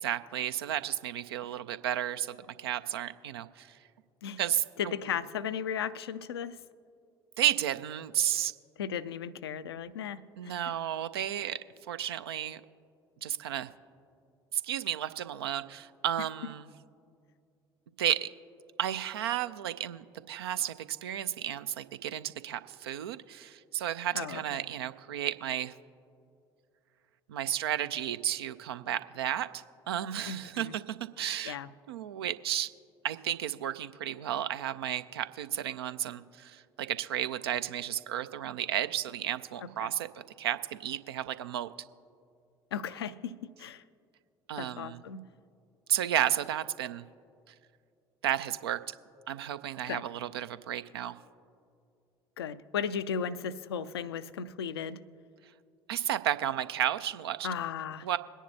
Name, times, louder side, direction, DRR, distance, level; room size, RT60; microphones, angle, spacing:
voice 1, 0.0-3.8 4.4-4.9 7.4-8.5 9.8-9.9 10.4-11.6 11.9-12.6 13.2-13.7 14.5-16.7 18.0-18.3 18.8-25.7 27.3-31.6 31.9-32.7 33.0-40.1 40.4-41.7 44.5-45.0 45.9-47.1 48.2-48.9 49.3-51.2 55.9-57.5 58.0-58.2, right 11 dB, 70° right, 12 dB, 0.5 m, -33 dB
voice 2, 4.8-6.6 8.8-10.5 24.1-24.6 30.3-30.7 31.4-31.7 39.8-39.9 42.7-43.8 44.6-45.2 49.9-50.0 52.4-55.0 57.4-58.1, left 7 dB, 75° left, 13 dB, 0.4 m, -36 dB
22.5 x 10.0 x 2.7 m, 2.4 s
figure-of-eight pair, 60°, 13 cm